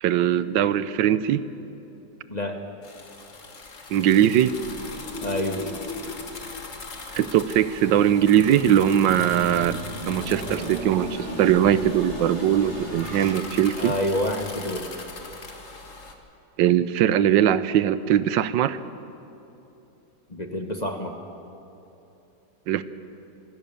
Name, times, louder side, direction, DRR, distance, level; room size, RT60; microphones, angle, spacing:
voice 1, 0.0-1.4 3.9-4.5 7.2-9.8 10.1-11.1 11.4-13.9 16.6-18.8 22.7-22.8, right 10 dB, 80° right, 15 dB, 1.4 m, -20 dB
sound 1, 2.8-16.1, left 3 dB, 45° left, 1.9 m, -41 dB
sound 2, 4.6-15.1, equal, 30° right, 3.6 m, -37 dB
voice 2, 5.2-5.7 13.8-14.9 20.3-21.2, left 1 dB, 25° left, 4 dB, 1.1 m, -28 dB
26.0 x 16.0 x 7.0 m, 2.9 s
omnidirectional pair, 2.0 m